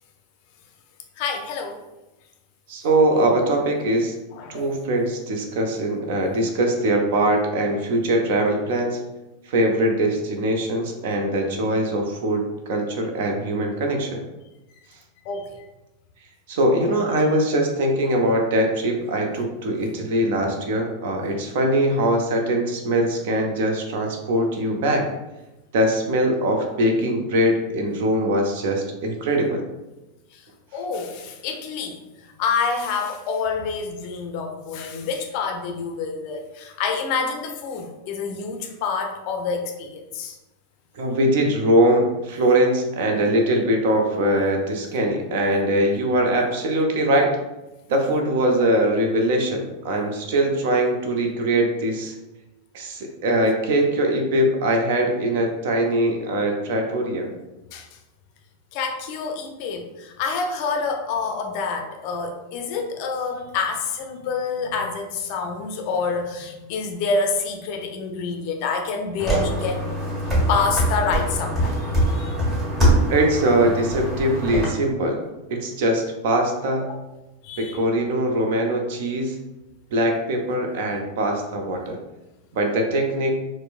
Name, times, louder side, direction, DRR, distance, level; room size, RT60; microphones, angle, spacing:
voice 1, 1.2-1.8 4.3-4.7 15.3-15.6 20.4-20.5 30.3-30.4 30.7-32.0 32.4-40.4 57.7-57.9 58.7-69.8 70.5-72.4 77.4-77.8, left 5 dB, 45° left, 4 dB, 0.4 m, -27 dB
voice 2, 2.7-4.2 4.5-9.0 9.5-14.2 16.5-25.1 25.7-29.6 40.9-47.3 47.9-52.2 52.7-57.3 73.1-75.2 75.5-76.9 77.6-79.4 79.9-82.0 82.5-83.4, right 1 dB, 55° right, 2 dB, 0.5 m, -22 dB
sound 1, 69.2-74.6, right 1 dB, 20° right, 1.4 m, -23 dB
4.4 x 2.0 x 2.4 m, 1.0 s
figure-of-eight pair, 90°, 0 cm